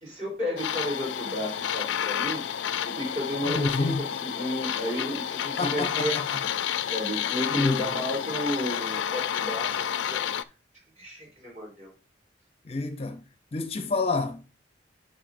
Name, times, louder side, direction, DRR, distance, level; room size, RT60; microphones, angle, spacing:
voice 1, 0.0-2.4 2.8-3.9 4.2-6.2 6.9-10.2 11.0-11.9, equal, 40° right, 3.6 m, -32 dB
sound 1, 0.6-10.4, left 9 dB, 90° left, 0.4 m, -30 dB
voice 2, 3.4-4.1 5.6-6.4 7.5-7.8 12.7-13.2 13.5-14.4, left 3 dB, 35° left, 0.5 m, -28 dB
10.0 x 5.7 x 2.6 m
head